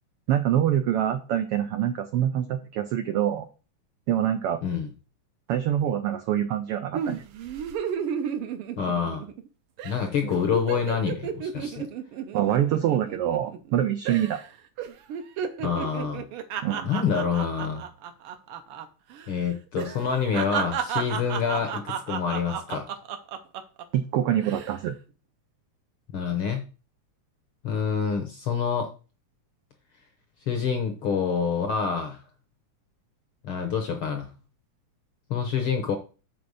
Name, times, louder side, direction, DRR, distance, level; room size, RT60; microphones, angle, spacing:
voice 1, 0.3-3.5 4.1-4.6 5.5-7.2 10.2-10.3 12.3-14.4 16.6-16.9 23.9-25.0, right 11 dB, 90° right, 8 dB, 1.2 m, -25 dB
sound 1, 6.9-9.5 9.8-10.0 10.3-13.7 14.1-14.5 14.8-18.9 19.1-19.3 19.8-23.8 24.3-24.8, right 8 dB, 75° right, 1.3 m, -33 dB
voice 2, 8.8-9.2 9.8-11.9 15.6-16.2 16.8-17.8 19.3-22.9 26.1-26.6 27.6-28.9 30.5-32.2 33.4-34.3 35.3-36.0, left 6 dB, 65° left, 6 dB, 1.3 m, -27 dB
6.9 x 4.3 x 6.3 m, 0.34 s
omnidirectional pair, 3.4 m